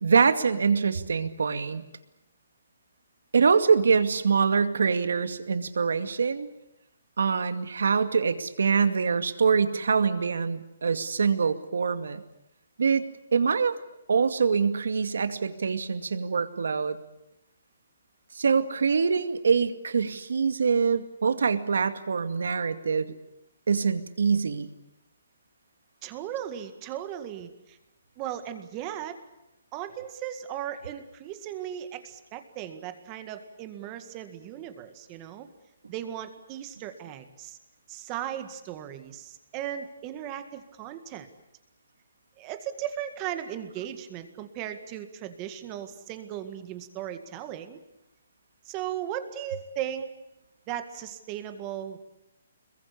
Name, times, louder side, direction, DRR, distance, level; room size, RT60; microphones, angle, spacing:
voice 1, 0.0-1.8 3.3-6.5 7.2-12.2 12.8-13.0 13.3-13.8 14.1-17.0 18.3-23.1 23.7-24.7, right 5 dB, 80° right, 10 dB, 2.3 m, -24 dB
voice 2, 26.0-27.8 28.2-29.2 29.7-35.5 35.9-37.6 37.9-41.3 42.4-47.8 48.7-50.1 50.7-52.0, right 10 dB, 20° right, 9 dB, 1.9 m, -37 dB
26.5 x 22.0 x 8.5 m, 0.86 s
hypercardioid pair, 170°, 0 cm